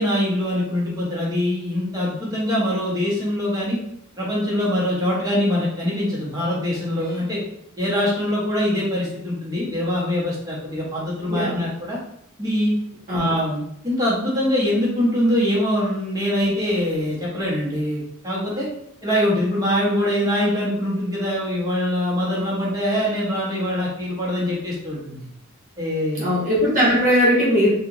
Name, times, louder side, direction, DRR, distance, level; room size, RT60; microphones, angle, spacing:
voice 1, 0.0-3.8 4.2-7.4 7.8-12.0 12.4-12.7 13.1-18.7 19.0-25.3 25.8-26.3, left 1 dB, 15° right, -6 dB, 1.3 m, -23 dB
voice 2, 11.3-11.7 13.1-13.3 26.1-27.7, equal, 40° right, -7 dB, 1.3 m, -19 dB
4.5 x 2.5 x 3.0 m, 0.73 s
head